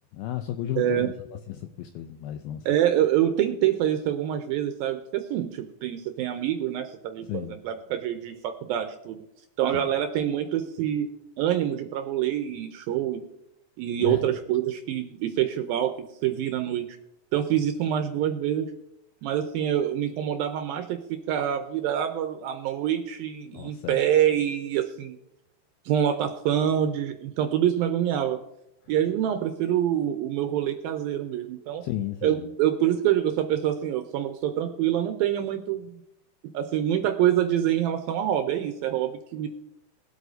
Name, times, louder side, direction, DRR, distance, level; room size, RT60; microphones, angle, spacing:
voice 1, 0.1-1.1 1.5-2.7 7.3-7.6 9.7-9.9 14.0-14.3 23.5-24.0 31.8-32.5, left 11 dB, 85° left, 7 dB, 2.1 m, -33 dB
voice 2, 0.8-1.1 2.7-9.2 9.6-11.1 11.4-13.2 13.8-16.9 17.3-18.7 19.2-25.2 25.9-28.4 28.9-31.8 32.2-36.0 36.5-39.5, right 11 dB, 85° right, 6 dB, 2.2 m, -26 dB
21.5 x 8.1 x 2.7 m, 0.85 s
omnidirectional pair, 4.8 m